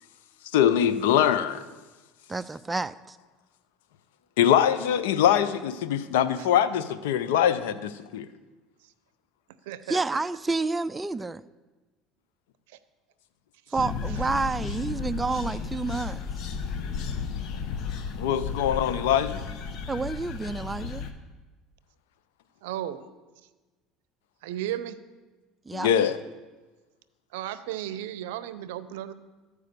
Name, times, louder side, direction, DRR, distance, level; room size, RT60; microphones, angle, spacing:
voice 1, 0.5-1.6 4.4-8.3 18.2-19.4 25.7-26.2, left 9 dB, 85° left, 12 dB, 0.6 m, -23 dB
voice 2, 2.3-3.2 9.9-11.4 13.7-16.2 19.9-21.1 25.7-25.9, right 3 dB, 15° right, 13 dB, 0.4 m, -29 dB
voice 3, 9.7-10.0 13.7-13.8 22.6-23.0 24.4-25.0 27.3-29.1, right 12 dB, 85° right, 14 dB, 0.5 m, -34 dB
sound 1, 13.8-21.1, left 6 dB, 60° left, 1.0 m, -33 dB
13.5 x 4.9 x 6.6 m, 1.2 s
supercardioid pair, 90°, 0 cm